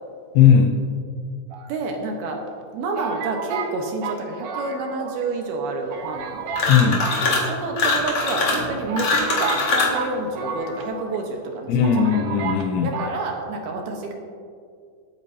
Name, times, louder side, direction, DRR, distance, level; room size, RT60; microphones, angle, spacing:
voice 1, 0.3-0.8 6.7-7.1 11.7-12.9, left 7 dB, 80° left, 1 dB, 3.1 m, -17 dB
sound 1, 1.5-2.3 3.0-5.3 5.5-5.6 5.9-6.7 7.0-8.0 8.5-8.6 8.9-11.2 11.5-11.6 11.8-12.7 12.9-13.2, right 6 dB, 85° right, 2.0 m, -32 dB
voice 2, 1.7-2.4 2.7-6.4 7.2-12.2 12.8-14.1, right 3 dB, 70° right, 2 dB, 2.5 m, -29 dB
sound 2, 6.5-7.5 7.8-10.0, left 3 dB, 50° left, 1.9 m, -22 dB
25.0 x 8.9 x 2.8 m, 2.2 s
omnidirectional pair, 5.7 m